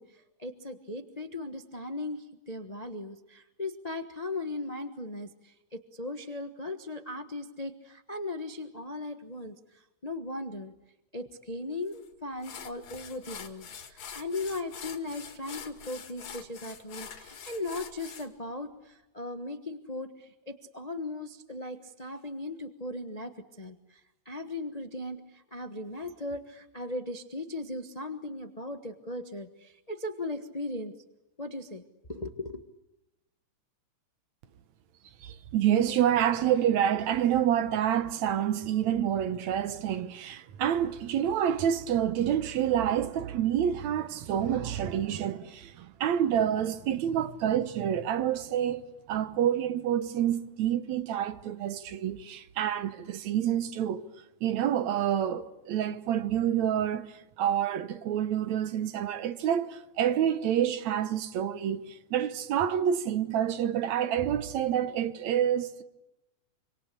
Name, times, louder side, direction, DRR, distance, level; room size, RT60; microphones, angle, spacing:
voice 1, 0.0-10.7 11.1-24.0 24.2-30.9 31.4-31.8 32.1-32.6, left 2 dB, 45° left, 0.4 m, -38 dB
sound 1, 11.9-12.0 12.4-18.3, left 7 dB, 70° left, 3.5 m, -44 dB
voice 2, 35.2-48.8 49.1-54.1 54.4-65.8, right 10 dB, 75° right, 2.4 m, -28 dB
26.0 x 26.0 x 8.4 m
omnidirectional pair, 3.3 m